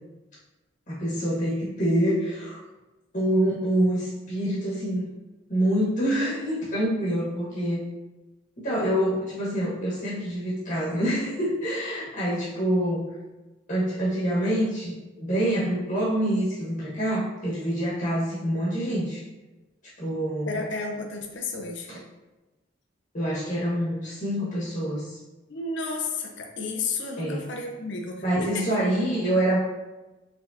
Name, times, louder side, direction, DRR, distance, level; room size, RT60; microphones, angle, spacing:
voice 1, 0.9-2.6 3.1-5.1 5.5-7.8 8.6-13.2 13.7-19.2 20.0-20.6 21.9-22.0 23.1-25.2 27.2-27.5 28.2-29.6, right 1 dB, 45° left, -8 dB, 1.2 m, -26 dB
voice 2, 20.5-21.9 25.5-28.6, left 3 dB, 65° left, 2 dB, 0.6 m, -32 dB
4.7 x 3.5 x 2.6 m, 1.1 s
head